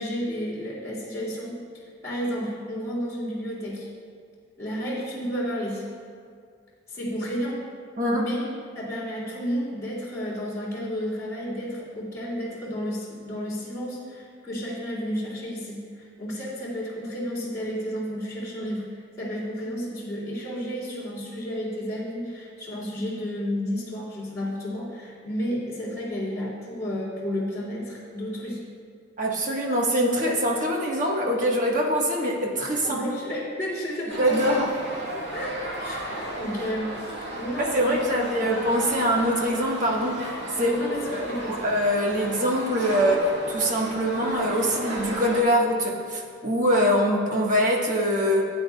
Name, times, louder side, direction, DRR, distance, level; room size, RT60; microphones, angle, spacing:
voice 1, 0.0-1.5 2.0-3.9 4.6-5.8 6.9-7.6 8.1-8.4 8.7-18.8 19.2-28.6 32.8-34.6 35.1-38.6 40.5-41.5, equal, 15° left, -10 dB, 2.7 m, -32 dB
voice 2, 29.2-33.0 34.2-34.7 37.6-40.2 40.6-40.7 41.1-48.5, equal, 40° right, -2 dB, 1.4 m, -23 dB
sound 1, 34.1-45.4, right 1 dB, 65° right, 1.8 m, -35 dB
15.0 x 9.2 x 2.3 m, 2.2 s
head